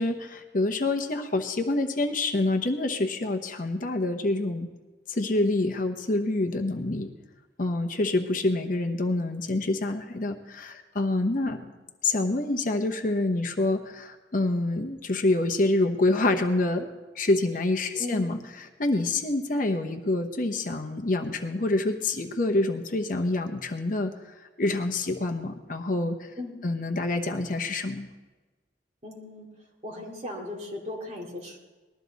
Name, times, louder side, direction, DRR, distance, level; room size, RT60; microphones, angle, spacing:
voice 1, 0.0-4.7 5.1-7.1 7.6-11.6 12.0-16.9 17.1-24.1 24.6-26.3 26.6-28.1, left 2 dB, 45° left, 5 dB, 0.9 m, -27 dB
voice 2, 18.0-18.3 26.4-26.6 29.0-29.5 29.8-31.6, left 2 dB, 35° right, -2 dB, 2.9 m, -37 dB
20.0 x 13.0 x 4.1 m, 1.3 s
head